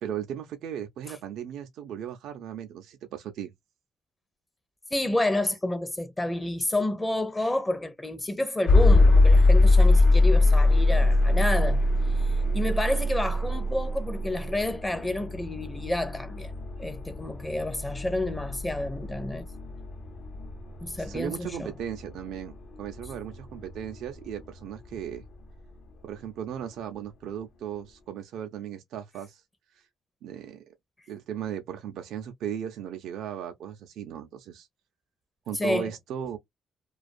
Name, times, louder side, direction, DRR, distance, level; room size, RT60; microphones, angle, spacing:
voice 1, 0.0-3.5 21.0-25.2 26.0-29.4 29.7-29.9 30.2-30.7 31.1-34.7 35.5-36.4, right 9 dB, 80° right, 0.4 m, -36 dB
voice 2, 4.9-11.8 12.2-16.5 16.8-19.5 20.8-21.7 35.5-35.9, left 1 dB, 15° left, 0.5 m, -30 dB
sound 1, 8.7-24.6, left 2 dB, 65° left, 0.7 m, -23 dB
2.4 x 2.3 x 2.4 m
cardioid pair, 90°, 0 cm